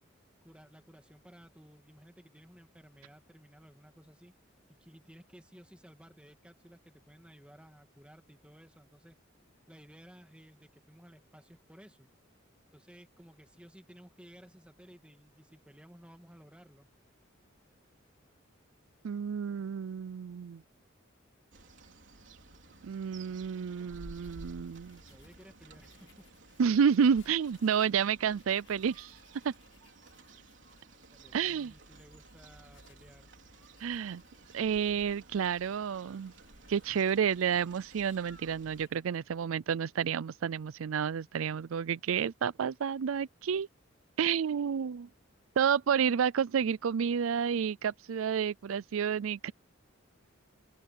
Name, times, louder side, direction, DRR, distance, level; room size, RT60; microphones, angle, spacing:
voice 1, 0.4-4.3 4.8-9.2 9.7-12.1 12.7-16.9 25.1-26.3 31.1-33.3, equal, 5° right, 2.3 m, -56 dB
voice 2, 19.0-20.6 22.8-25.0 26.6-29.2 29.4-29.5 31.3-31.7 33.8-34.2 34.5-36.3 36.7-43.7 44.2-45.1 45.6-49.5, right 7 dB, 90° right, 0.4 m, -30 dB
sound 1, 21.5-38.9, right 2 dB, 60° right, 4.2 m, -55 dB
Writing, 23.3-39.5, left 6 dB, 80° left, 7.0 m, -68 dB
open air
head